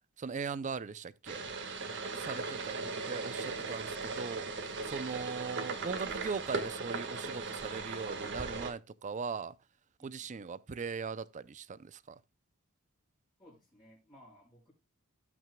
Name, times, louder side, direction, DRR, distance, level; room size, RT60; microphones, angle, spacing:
voice 1, 0.2-1.5 2.1-2.8 3.1-4.5 4.8-9.5 10.0-12.2, right 5 dB, 35° right, 0.5 m, -39 dB
sound 1, 1.3-8.7, right 4 dB, 60° right, 1.6 m, -38 dB
voice 2, 10.0-10.3 13.4-14.7, left 1 dB, 20° left, 5.5 m, -60 dB
18.5 x 6.1 x 2.2 m
head